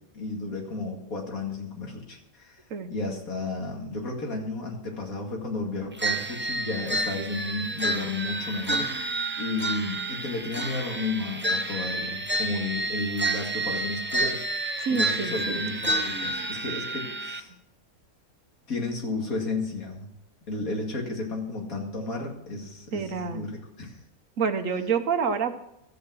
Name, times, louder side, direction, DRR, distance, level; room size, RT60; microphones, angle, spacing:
voice 1, 0.1-2.6 2.9-9.1 9.4-14.4 14.9-17.5 18.7-20.1 20.5-24.0, left 3 dB, 75° left, 1 dB, 2.7 m, -33 dB
sound 1, 6.0-17.4, right 2 dB, 20° right, 0.3 m, -29 dB
voice 2, 14.8-15.6 22.9-23.5 24.4-25.5, right 6 dB, 65° right, 9 dB, 1.2 m, -28 dB
13.5 x 8.6 x 6.1 m, 0.82 s
omnidirectional pair, 1.5 m